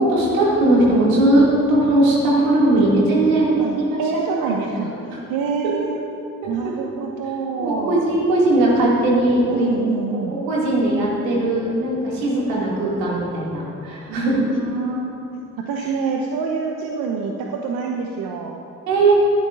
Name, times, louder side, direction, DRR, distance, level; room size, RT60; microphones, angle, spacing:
voice 1, 0.0-3.5 3.8-4.6 5.1-5.2 7.6-9.7 10.1-14.4 18.9-19.1, right 1 dB, 80° right, -5 dB, 2.6 m, -19 dB
voice 2, 3.6-6.0 6.5-8.0 9.5-10.4 14.0-15.2 15.7-18.6, right 5 dB, 55° right, 1 dB, 1.0 m, -26 dB
19.0 x 11.0 x 2.6 m, 2.9 s
figure-of-eight pair, 45°, 42 cm